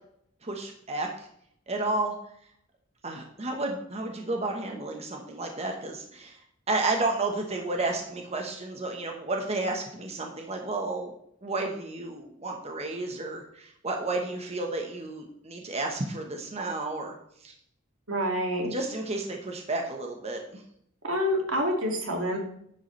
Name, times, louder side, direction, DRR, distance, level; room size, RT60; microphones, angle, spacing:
voice 1, 0.4-1.3 1.7-2.1 3.0-6.4 6.7-11.1 11.4-17.2 17.4-17.5 18.6-20.6, right 2 dB, 30° right, 2 dB, 1.1 m, -32 dB
voice 2, 18.1-18.7 21.0-22.4, equal, 85° right, 1 dB, 2.3 m, -27 dB
10.0 x 8.1 x 3.2 m, 0.70 s
head